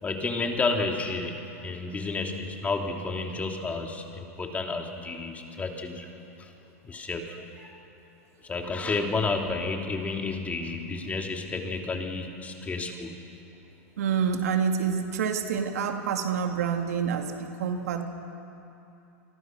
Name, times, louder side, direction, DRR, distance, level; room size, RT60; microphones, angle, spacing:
voice 1, 0.0-6.1 6.4-6.5 6.8-7.8 8.4-13.1, left 3 dB, 20° left, 2 dB, 3.0 m, -31 dB
voice 2, 14.0-18.0, right 7 dB, 80° right, 4 dB, 2.5 m, -27 dB
29.0 x 24.5 x 6.4 m, 2.9 s
hypercardioid pair, 120°, 8 cm